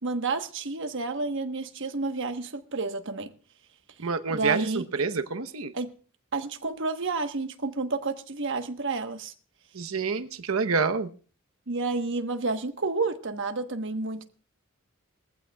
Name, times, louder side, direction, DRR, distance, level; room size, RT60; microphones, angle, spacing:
voice 1, 0.0-3.3 4.3-4.9 5.7-5.9 6.3-9.3 11.7-14.2, right 3 dB, 60° right, 1.2 m, -30 dB
voice 2, 4.0-5.7 9.7-11.1, right 4 dB, 75° right, 0.9 m, -27 dB
22.0 x 15.0 x 2.3 m
head